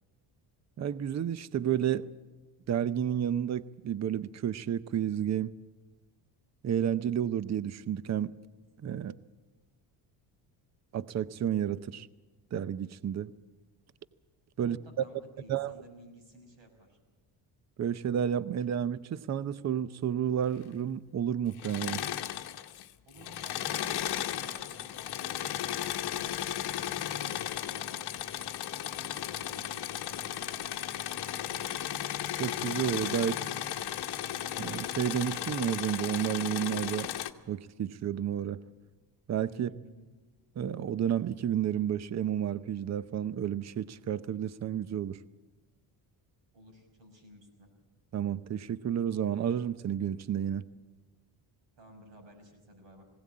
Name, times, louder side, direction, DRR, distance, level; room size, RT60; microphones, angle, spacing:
voice 1, 0.8-2.1 2.7-5.5 6.6-8.3 8.8-9.2 10.9-12.1 12.5-13.3 14.6-14.8 15.5-15.7 17.8-22.0 32.4-33.3 34.6-37.1 37.5-38.6 39.3-39.7 40.6-45.2 48.1-50.6, right 9 dB, 35° right, 0.7 m, -31 dB
voice 2, 14.6-17.0 23.1-26.6 26.9-28.2 29.1-32.0 33.2-34.0 39.5-40.1 46.5-47.7 51.8-53.0, right 1 dB, 65° right, 5.7 m, -55 dB
Engine / Mechanisms, 21.5-22.9 23.2-37.3, left 11 dB, 55° left, 1.1 m, -35 dB
19.5 x 17.0 x 8.6 m
cardioid pair, 105°, 47 cm